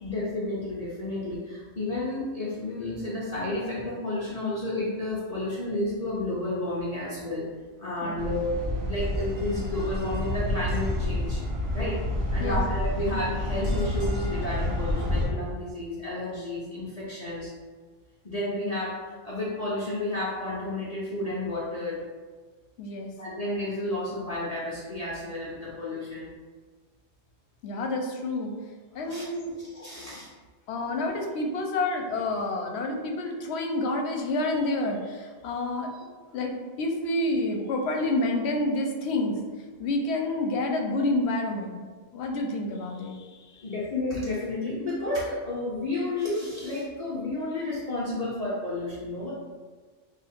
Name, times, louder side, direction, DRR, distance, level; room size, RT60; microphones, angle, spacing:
voice 1, 0.0-7.5 7.8-11.4 11.7-12.0 12.3-17.5 18.2-22.0 23.2-26.3 28.9-29.2 29.6-30.3 43.6-49.3, left 1 dB, 45° left, -8 dB, 0.6 m, -31 dB
sound 1, 8.2-15.3, left 1 dB, 45° right, 0.8 m, -29 dB
voice 2, 22.8-23.1 27.6-28.5 28.9-29.5 30.7-35.9 36.3-39.4 39.8-41.9 42.1-43.3, left 2 dB, 75° left, 2 dB, 0.9 m, -28 dB
2.9 x 2.4 x 4.3 m, 1.4 s
omnidirectional pair, 1.1 m